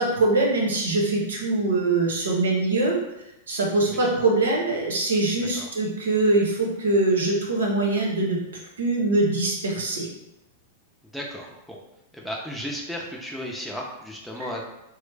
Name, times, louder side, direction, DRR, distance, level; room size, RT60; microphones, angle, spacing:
voice 1, 0.0-3.0 3.5-8.4 8.8-10.1, right 2 dB, 85° right, -1 dB, 0.8 m, -23 dB
voice 2, 11.0-11.8 12.1-14.6, equal, ahead, -2 dB, 0.6 m, -34 dB
3.1 x 2.0 x 3.3 m, 0.90 s
hypercardioid pair, 110°, 0 cm